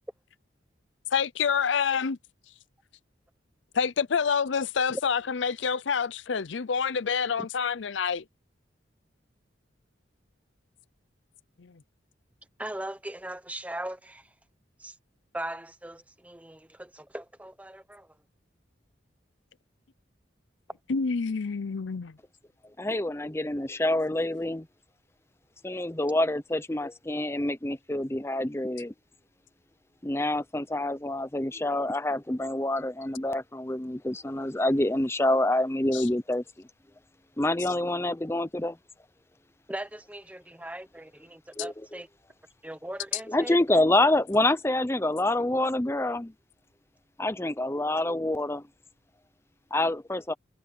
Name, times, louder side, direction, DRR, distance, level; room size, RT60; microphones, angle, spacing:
voice 1, 1.1-2.2 3.7-8.2 11.6-11.7 20.9-22.1 35.9-36.0, left 6 dB, 75° left, 0.6 m, -27 dB
voice 2, 12.6-14.3 14.8-15.0 15.3-18.1 39.7-42.1 42.6-43.6, right 1 dB, 10° right, 1.1 m, -39 dB
voice 3, 22.8-24.7 25.6-28.9 30.0-36.7 37.4-38.8 41.6-42.0 43.3-46.3 47.2-48.6 49.7-50.3, left 1 dB, 15° left, 0.6 m, -27 dB
head